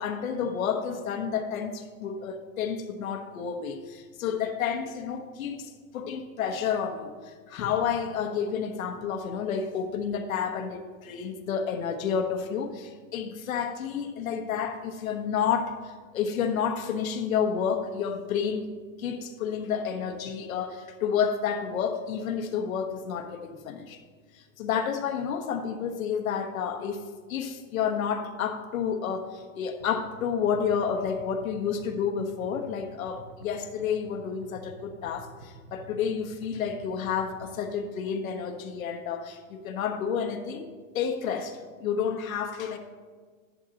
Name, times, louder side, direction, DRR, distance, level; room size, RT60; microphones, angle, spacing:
voice 1, 0.0-24.0 24.3-40.6 40.9-42.8, left 7 dB, 90° left, 1.3 m, -30 dB
sound 1, 29.8-37.8, right 3 dB, 45° right, 1.5 m, -49 dB
12.5 x 11.0 x 3.0 m
supercardioid pair, 180°, 40 cm